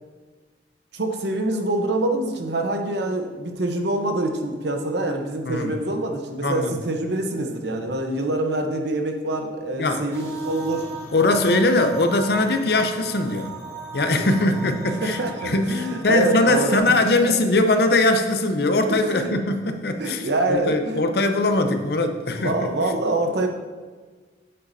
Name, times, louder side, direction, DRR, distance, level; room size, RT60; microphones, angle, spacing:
voice 1, 0.9-10.9 15.0-16.9 17.3-17.4 19.0-19.4 20.0-21.0 22.3-23.5, right 2 dB, 75° right, 4 dB, 0.9 m, -25 dB
voice 2, 6.4-6.8 9.8-10.0 11.1-13.5 13.9-22.7, left 2 dB, 65° left, 7 dB, 0.6 m, -21 dB
sound 1, 10.1-16.8, right 5 dB, 15° left, 2.3 m, -38 dB
8.1 x 7.6 x 2.7 m, 1.4 s
head